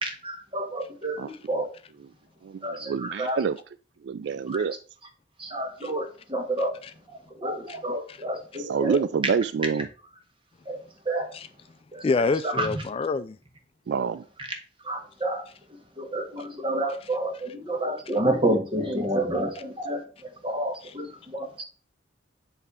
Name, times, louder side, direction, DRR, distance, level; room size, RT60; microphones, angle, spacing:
voice 1, 0.0-1.7 2.6-3.4 4.5-4.6 5.4-6.8 7.4-9.0 10.7-10.8 11.0-11.3 11.9-12.0 12.4-12.7 14.8-15.4 16.0-20.0 20.4-21.6, right 1 dB, 30° right, 1.5 m, -29 dB
voice 2, 2.4-3.6 4.0-4.7 8.6-9.9 13.9-14.2, right 6 dB, 65° right, 0.3 m, -27 dB
voice 3, 12.0-13.3 20.8-20.9, left 4 dB, 30° left, 0.3 m, -27 dB
8.2 x 3.3 x 4.9 m
head